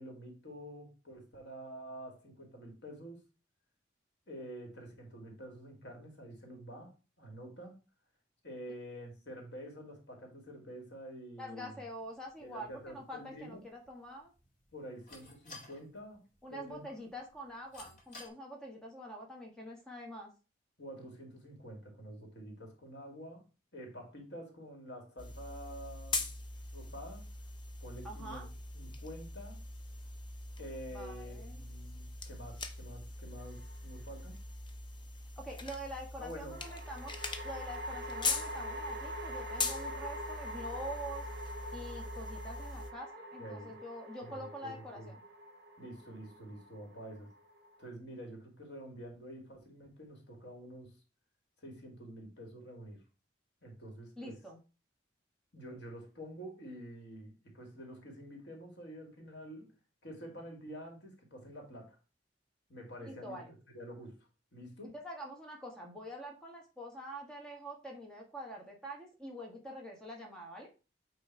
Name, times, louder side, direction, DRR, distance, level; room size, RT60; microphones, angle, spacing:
voice 1, 0.0-3.2 4.3-7.8 8.4-11.8 12.4-13.7 14.7-16.2 16.5-17.1 20.8-23.4 23.7-26.2 26.7-27.3 27.8-28.5 28.7-29.6 30.6-34.4 36.2-36.6 43.4-43.8 44.2-45.1 45.8-47.3 47.8-51.0 51.6-53.0 53.6-54.4 55.5-59.7 60.0-62.0 62.7-64.3 64.5-65.0, equal, 65° left, 2 dB, 2.2 m, -48 dB
voice 2, 11.4-14.3 16.4-20.3 28.0-28.5 30.9-31.6 35.4-37.1 37.4-41.2 41.7-45.2 54.2-54.6 63.0-63.5 64.9-70.9, equal, 5° left, -1 dB, 1.4 m, -45 dB
sound 1, 11.9-18.3, left 3 dB, 45° left, 2.1 m, -57 dB
sound 2, 25.2-42.9, left 3 dB, 25° left, 0.7 m, -42 dB
sound 3, 33.4-34.1 36.5-47.9, equal, 55° right, 1.1 m, -45 dB
8.6 x 3.1 x 4.6 m, 0.32 s
head